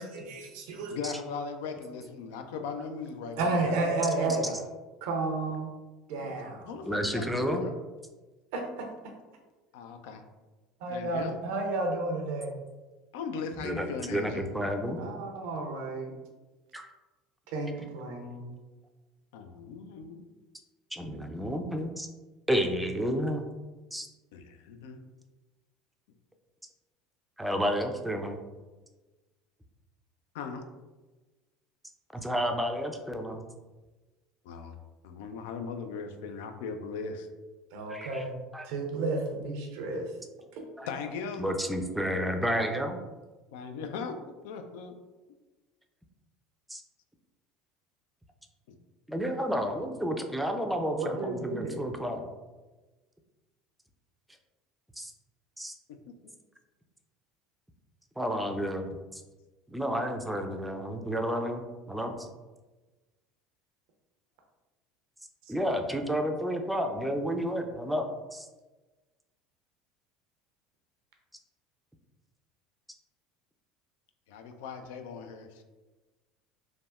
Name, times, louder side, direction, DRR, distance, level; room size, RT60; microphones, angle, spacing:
voice 1, 0.0-0.9 3.4-4.5 5.0-5.7 6.1-6.7 8.5-8.8 10.8-12.5 15.0-16.1 17.5-18.5 37.7-38.3 38.6-40.1 40.5-40.6 51.0-51.8, right 2 dB, 70° right, 2 dB, 0.5 m, -32 dB
voice 2, 0.9-3.9 4.2-4.6 6.2-6.3 6.6-7.8 9.7-10.2 10.9-11.4 13.1-14.5 19.3-20.3 24.3-25.0 30.3-30.6 34.4-34.7 35.0-37.3 40.9-41.4 43.5-44.2 44.4-44.9 48.7-48.8 74.3-75.6, left 5 dB, 75° left, 6 dB, 0.3 m, -38 dB
voice 3, 6.9-7.6 13.6-15.0 16.7-16.9 20.9-22.1 22.5-23.5 23.9-24.1 27.4-28.4 32.1-33.4 37.9-38.2 38.5-38.7 40.8-40.9 41.4-43.0 46.7-46.8 49.1-52.2 55.0-55.1 55.6-55.7 58.2-59.2 59.7-62.2 65.5-68.0 68.3-68.5, equal, 5° right, 4 dB, 0.4 m, -31 dB
3.3 x 2.1 x 2.3 m, 1.2 s
hypercardioid pair, 75°, 0 cm